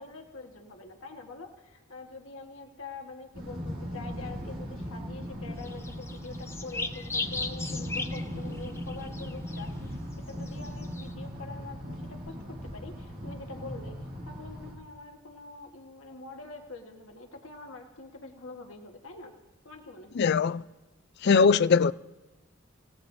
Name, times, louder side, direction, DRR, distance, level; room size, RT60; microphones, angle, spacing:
voice 1, 0.0-10.0 10.2-19.3 19.6-20.3, left 3 dB, 80° left, 1.5 m, -45 dB
sound 1, 3.3-14.7, equal, 45° right, 6.2 m, -38 dB
sound 2, 5.6-11.1, left 3 dB, 15° left, 0.7 m, -38 dB
voice 2, 20.1-20.6 21.2-21.9, left 5 dB, 55° left, 0.4 m, -21 dB
27.5 x 17.0 x 2.7 m
head